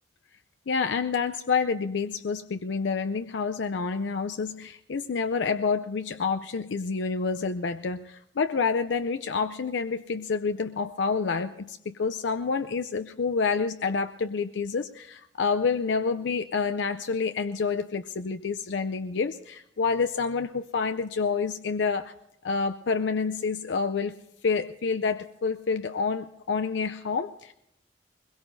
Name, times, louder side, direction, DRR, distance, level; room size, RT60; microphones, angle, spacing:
voice 1, 0.7-22.1 22.4-24.2 24.4-27.5, left 5 dB, 70° left, 9 dB, 0.5 m, -28 dB
22.0 x 21.5 x 2.7 m, 0.81 s
head